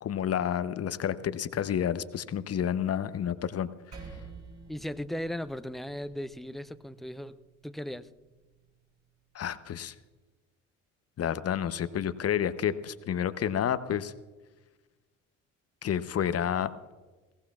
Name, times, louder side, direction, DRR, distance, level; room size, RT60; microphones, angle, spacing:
voice 1, 0.0-3.7 9.3-9.9 11.2-14.1 15.8-16.7, left 9 dB, 40° left, 13 dB, 0.8 m, -30 dB
Percussion, 3.9-8.7, right 4 dB, 50° right, 5.9 m, -50 dB
voice 2, 4.7-7.4 7.6-8.1, left 1 dB, ahead, 13 dB, 0.6 m, -37 dB
21.0 x 17.5 x 2.4 m, 1.2 s
hypercardioid pair, 55°, 37 cm